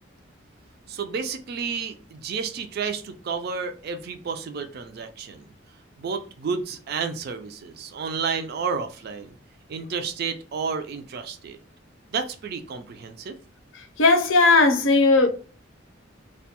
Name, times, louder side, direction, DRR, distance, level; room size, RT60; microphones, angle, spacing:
voice 1, 0.9-5.5 6.0-9.3 9.7-11.6 12.1-13.3, right 5 dB, 50° right, 0.3 m, -31 dB
voice 2, 14.0-15.3, left 3 dB, 75° left, 0.5 m, -17 dB
2.3 x 2.2 x 2.8 m
head